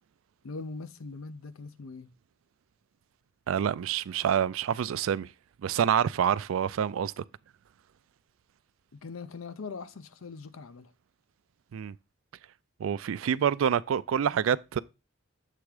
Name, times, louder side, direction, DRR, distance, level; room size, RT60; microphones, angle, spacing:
voice 1, 0.4-2.1 8.9-10.9, left 4 dB, 80° left, 0.6 m, -41 dB
voice 2, 3.5-5.3 5.6-7.2 11.7-11.9 12.8-14.8, right 8 dB, 75° right, 0.3 m, -27 dB
7.5 x 3.5 x 4.8 m
head